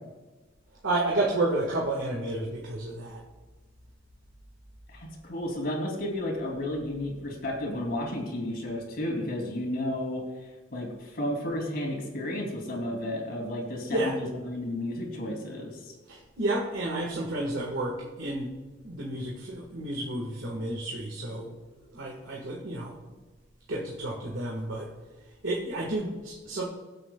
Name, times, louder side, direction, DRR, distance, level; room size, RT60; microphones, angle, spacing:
voice 1, 0.8-3.2 13.9-14.2 16.1-18.5 18.8-21.5 21.9-22.9 23.7-24.9 25.4-26.6, right 2 dB, 75° right, -3 dB, 1.8 m, -31 dB
voice 2, 4.9-10.2 10.7-15.9, left 1 dB, 50° left, 0 dB, 3.0 m, -32 dB
23.0 x 7.8 x 2.4 m, 1.2 s
head